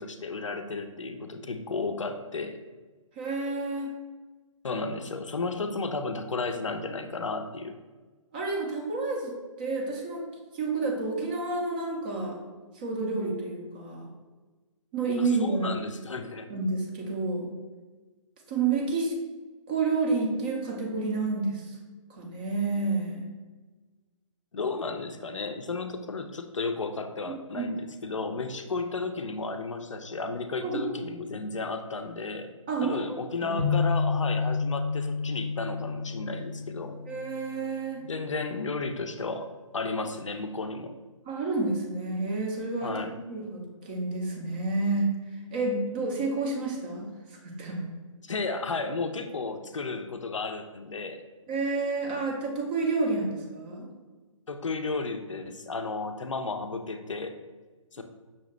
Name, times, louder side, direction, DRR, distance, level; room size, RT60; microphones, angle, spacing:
voice 1, 0.0-2.6 4.6-7.8 15.2-16.5 24.5-32.5 32.8-37.0 38.0-41.0 42.8-43.1 48.2-51.2 54.5-57.4 57.9-58.0, left 3 dB, 65° left, 7 dB, 0.4 m, -33 dB
voice 2, 3.2-3.9 8.3-10.2 10.5-12.4 12.7-14.1 14.9-15.8 16.5-17.5 18.5-19.1 19.7-21.8 22.1-23.3 27.2-27.7 28.1-28.2 30.6-30.9 32.7-33.6 37.1-38.0 41.3-45.1 45.5-47.1 47.4-47.9 51.5-53.9, right 3 dB, 15° right, -1 dB, 0.4 m, -30 dB
sound 1, 33.6-37.6, left 4 dB, 70° right, 1.1 m, -29 dB
5.6 x 2.7 x 3.1 m, 1.3 s
figure-of-eight pair, 135°, 17 cm